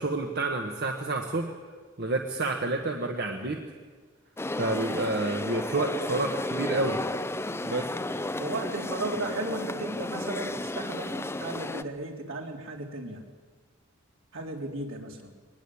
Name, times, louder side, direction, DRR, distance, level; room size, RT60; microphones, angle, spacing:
voice 1, 0.0-1.5 2.0-3.6 4.5-7.0 7.6-7.9, right 2 dB, 50° right, 3 dB, 1.5 m, -29 dB
sound 1, 4.4-11.8, left 2 dB, 10° left, 0.6 m, -33 dB
voice 2, 8.4-13.2 14.3-15.3, right 2 dB, 70° right, 0 dB, 3.6 m, -35 dB
22.0 x 19.5 x 8.7 m, 1.5 s
head